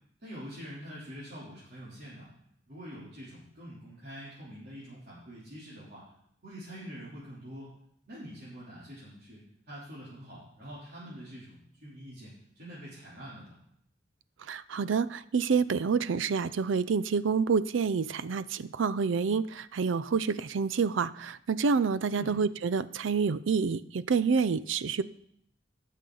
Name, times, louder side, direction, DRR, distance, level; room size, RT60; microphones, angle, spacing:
voice 1, 0.2-2.3 2.7-6.0 6.4-7.7 8.1-13.6 22.1-22.4, equal, 55° right, -10 dB, 3.2 m, -45 dB
voice 2, 14.4-25.0, right 5 dB, 80° right, 16 dB, 0.4 m, -28 dB
16.5 x 6.6 x 3.9 m, 0.71 s
head